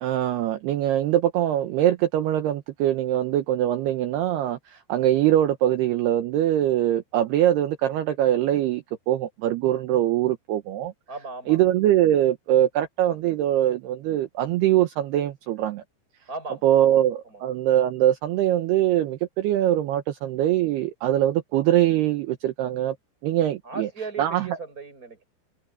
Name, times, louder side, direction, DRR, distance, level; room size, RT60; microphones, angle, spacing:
voice 1, 0.0-10.9 11.5-15.8 16.6-23.0 23.2-23.9 24.2-24.5, right 12 dB, 70° right, 2.7 m, -22 dB
voice 2, 11.1-11.6 16.3-17.0 17.3-17.4 23.6-25.2, right 3 dB, 15° right, 6.5 m, -37 dB
omnidirectional pair, 5.5 m